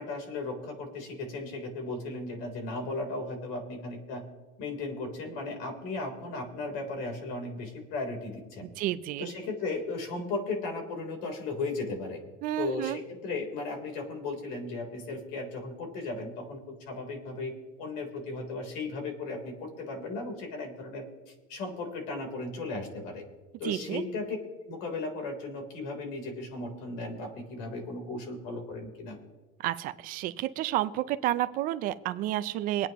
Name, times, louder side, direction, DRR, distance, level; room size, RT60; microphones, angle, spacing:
voice 1, 0.0-4.2 4.6-8.7 9.2-12.2 12.5-17.5 17.8-23.2 23.6-24.4 24.7-29.2, left 3 dB, 65° left, 3 dB, 3.6 m, -36 dB
voice 2, 8.8-9.3 12.4-13.0 23.6-24.0 29.6-32.9, right 14 dB, 40° right, 13 dB, 0.5 m, -30 dB
24.5 x 9.2 x 3.0 m, 1.3 s
cardioid pair, 175°, 21 cm